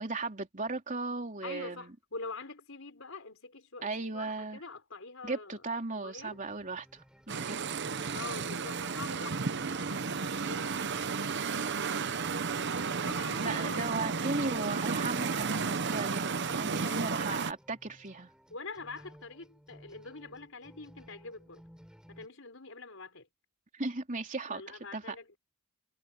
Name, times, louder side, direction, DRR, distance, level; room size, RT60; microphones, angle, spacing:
voice 1, 0.0-1.9 3.8-4.6 5.2-7.0 7.3-7.6 13.4-18.3 23.7-25.2, right 3 dB, 40° right, 3.6 m, -36 dB
voice 2, 1.4-5.7 5.9-6.4 8.1-11.0 13.0-14.2 14.4-14.9 16.8-17.2 18.5-21.6 22.1-23.3 24.5-25.4, left 3 dB, 65° left, 5.5 m, -45 dB
sound 1, 6.2-22.3, equal, 5° right, 7.7 m, -57 dB
sound 2, 7.3-17.5, right 5 dB, 55° right, 0.9 m, -33 dB
head